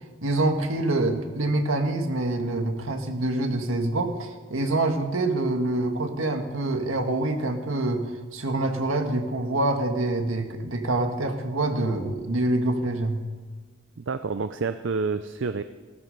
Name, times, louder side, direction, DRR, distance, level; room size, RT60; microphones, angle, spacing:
voice 1, 0.2-13.2, right 2 dB, 80° right, 5 dB, 1.8 m, -26 dB
voice 2, 14.0-15.6, right 4 dB, 65° right, 10 dB, 0.5 m, -28 dB
16.5 x 13.5 x 5.4 m, 1.4 s
head